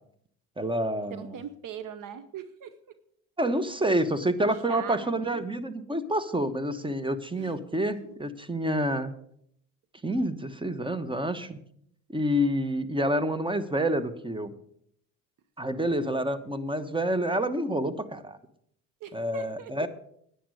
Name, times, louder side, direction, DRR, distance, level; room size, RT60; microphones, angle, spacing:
voice 1, 0.6-1.4 3.4-9.1 10.0-11.6 12.1-14.5 15.6-18.4 19.1-19.9, right 1 dB, 15° right, 13 dB, 1.2 m, -28 dB
voice 2, 1.1-2.7 4.5-5.5 7.4-7.5 8.0-8.1 19.0-19.9, right 8 dB, 55° right, 13 dB, 1.0 m, -41 dB
10.0 x 9.6 x 6.3 m, 0.68 s
supercardioid pair, 80°, 37 cm